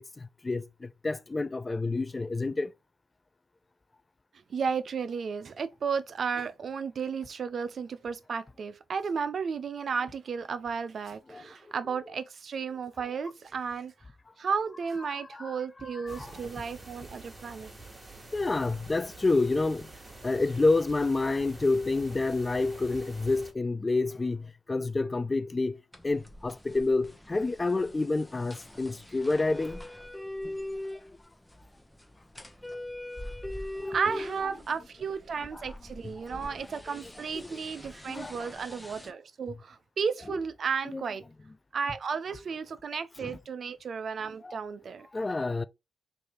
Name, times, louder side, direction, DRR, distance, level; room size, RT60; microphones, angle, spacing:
voice 1, 1.0-2.7 11.3-11.4 15.3-15.5 15.8-16.3 18.3-19.8 20.2-24.4 24.7-25.7 26.0-29.8 33.8-34.0 35.5-35.6 37.4-37.5 38.1-38.3 40.3-40.4 40.9-41.0 43.2-43.3 44.4-44.6 45.1-45.6, left 3 dB, 30° left, 0.4 m, -28 dB
voice 2, 4.5-13.9 14.4-17.7 33.9-41.2 41.7-45.1, right 6 dB, 60° right, 0.5 m, -33 dB
sound 1, 16.1-23.5, right 2 dB, 20° right, 1.8 m, -47 dB
sound 2, 25.9-39.1, left 1 dB, 5° left, 0.8 m, -42 dB
3.3 x 2.6 x 4.3 m
cardioid pair, 60°, 0 cm